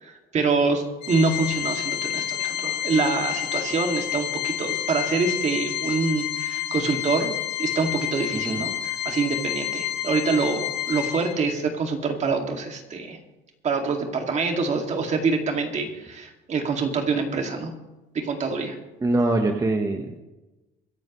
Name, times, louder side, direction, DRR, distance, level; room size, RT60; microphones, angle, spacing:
voice 1, 0.0-7.3 7.6-13.2 13.6-17.7 18.1-18.8, right 4 dB, 45° right, 4 dB, 2.3 m, -25 dB
Organ, 1.0-11.6, left 12 dB, 80° left, 1.3 m, -29 dB
voice 2, 8.3-8.6 19.0-20.2, right 2 dB, 20° right, 4 dB, 1.2 m, -23 dB
24.0 x 10.5 x 3.2 m, 1.1 s
cardioid pair, 110°, 17 cm